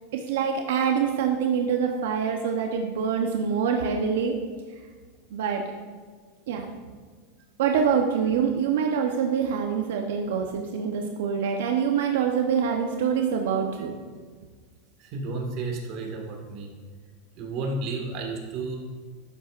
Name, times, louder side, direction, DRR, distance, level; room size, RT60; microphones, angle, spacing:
voice 1, 0.1-4.4 5.3-5.8 6.5-6.7 7.6-13.9, right 7 dB, 80° right, 3 dB, 0.9 m, -25 dB
voice 2, 15.0-16.7 17.4-18.8, right 3 dB, 40° right, 1 dB, 1.6 m, -32 dB
12.0 x 8.1 x 2.5 m, 1.6 s
supercardioid pair, 165°, 0 cm